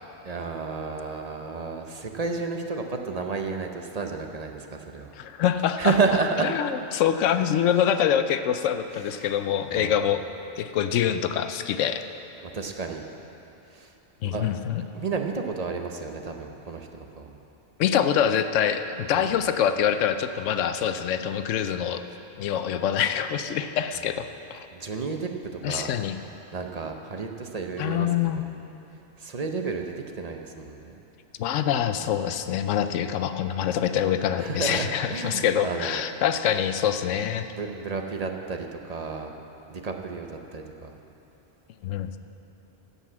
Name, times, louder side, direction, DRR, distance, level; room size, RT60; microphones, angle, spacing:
voice 1, 0.2-5.1 5.8-6.5 9.2-9.3 9.7-10.1 12.4-13.0 13.7-13.9 14.2-14.5 14.9-17.4 19.1-19.5 24.7-25.9 26.5-28.6 29.2-30.9 34.4-36.0 37.5-39.3 39.7-40.9, right 4 dB, 40° right, 3 dB, 0.7 m, -31 dB
voice 2, 5.1-5.9 6.4-10.2 10.6-12.0 14.2-14.8 17.8-22.0 22.4-24.7 25.6-26.2 27.8-28.4 31.4-37.5 41.8-42.2, left 9 dB, 85° left, 9 dB, 0.9 m, -25 dB
15.5 x 5.5 x 7.3 m, 2.9 s
omnidirectional pair, 1.3 m